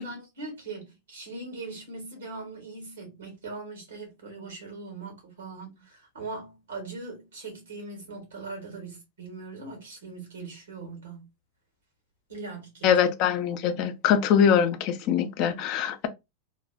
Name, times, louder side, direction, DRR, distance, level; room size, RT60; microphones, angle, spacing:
voice 1, 0.0-11.3 12.3-13.0, right 3 dB, 85° right, 1.5 m, -40 dB
voice 2, 12.8-16.1, left 8 dB, 50° left, 0.5 m, -23 dB
2.8 x 2.0 x 2.5 m
hypercardioid pair, 100°, 0 cm